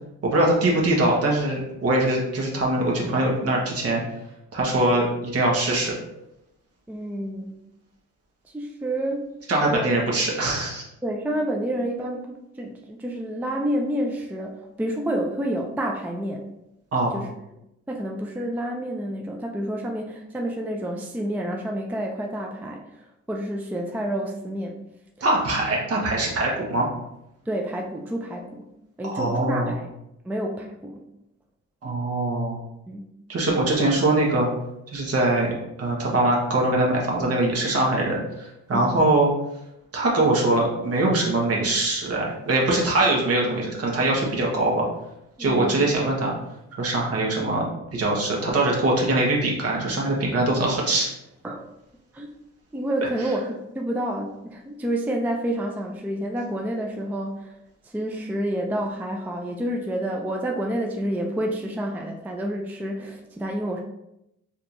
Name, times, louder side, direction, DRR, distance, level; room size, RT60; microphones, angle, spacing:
voice 1, 0.2-4.0 4.5-5.9 9.5-10.8 16.9-17.2 25.2-26.9 29.0-29.7 31.8-32.6 33.3-34.5 34.9-35.5 35.8-39.3 39.9-44.8 45.4-46.3 46.8-51.1 53.2-53.3, right 2 dB, 50° right, -2 dB, 1.2 m, -22 dB
voice 2, 6.9-7.6 8.4-9.3 9.7-9.9 11.0-16.5 17.1-17.3 17.9-24.7 25.2-25.3 27.5-28.6 29.0-29.9 30.2-31.0 32.9-33.1 38.7-39.0 45.4-45.8 51.4-51.6 52.1-52.3 52.7-57.5 57.8-63.8, right 1 dB, 5° right, 1 dB, 0.4 m, -29 dB
4.3 x 2.8 x 2.6 m, 0.86 s
cardioid pair, 90°, 30 cm